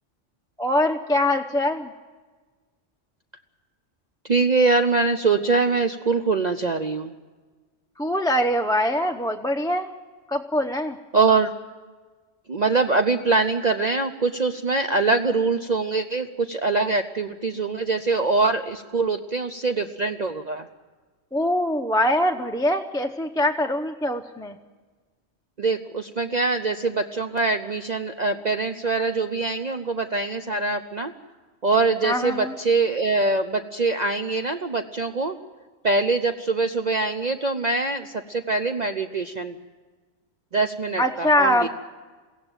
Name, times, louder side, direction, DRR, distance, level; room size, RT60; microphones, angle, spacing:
voice 1, 0.6-1.9 8.0-9.9 10.3-11.0 21.3-24.5 32.0-32.6 41.0-41.7, left 1 dB, 5° left, 3 dB, 0.6 m, -23 dB
voice 2, 4.3-7.1 11.1-11.5 12.5-20.7 25.6-31.1 31.6-35.4 35.8-39.6 40.5-41.7, right 3 dB, 40° right, 6 dB, 0.8 m, -23 dB
23.0 x 16.0 x 9.0 m, 1.4 s
omnidirectional pair, 1.2 m